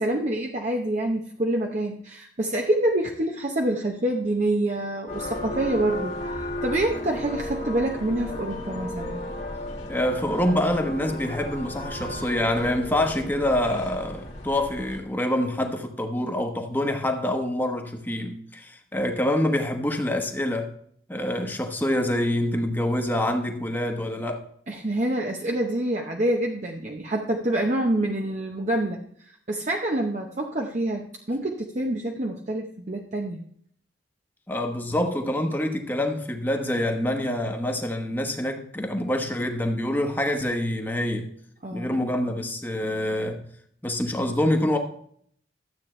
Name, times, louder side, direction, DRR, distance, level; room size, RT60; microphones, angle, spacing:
voice 1, 0.0-9.2 21.4-21.6 24.7-33.4 41.6-42.0, right 1 dB, 40° right, 1 dB, 0.8 m, -27 dB
sound 1, 5.1-15.0, left 1 dB, 35° left, 1.8 m, -34 dB
voice 2, 9.9-20.7 21.1-24.4 34.5-41.3 41.7-43.4 43.8-44.8, left 1 dB, 10° left, 3 dB, 1.1 m, -26 dB
12.5 x 8.2 x 3.2 m, 0.64 s
head